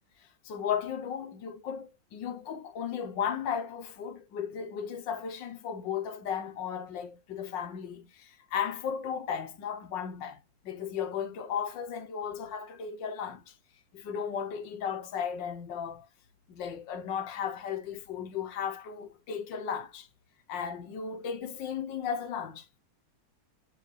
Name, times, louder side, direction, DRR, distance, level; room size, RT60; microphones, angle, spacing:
voice 1, 0.2-10.4 10.6-13.5 13.9-16.1 16.5-20.1 20.5-22.7, left 7 dB, 85° left, 1.7 m, -35 dB
9.1 x 3.7 x 3.3 m
omnidirectional pair, 1.9 m